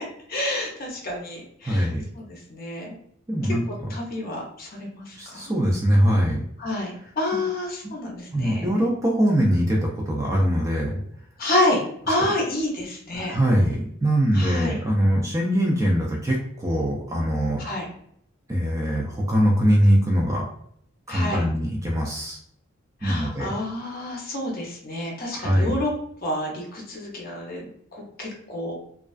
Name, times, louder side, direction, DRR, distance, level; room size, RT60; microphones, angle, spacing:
voice 1, 0.0-1.9 2.1-2.9 3.9-5.5 6.6-8.7 11.4-13.4 14.3-14.8 17.6-17.9 21.1-21.4 23.0-25.9 26.2-28.8, left 1 dB, 45° left, -1 dB, 0.7 m, -29 dB
voice 2, 1.7-2.0 3.3-3.6 5.2-6.4 7.3-7.4 7.8-8.0 8.3-11.0 13.1-17.6 18.5-20.5 21.1-22.4 23.0-23.5 25.3-25.8, equal, 15° right, -2 dB, 0.4 m, -22 dB
2.4 x 2.3 x 2.3 m, 0.68 s
head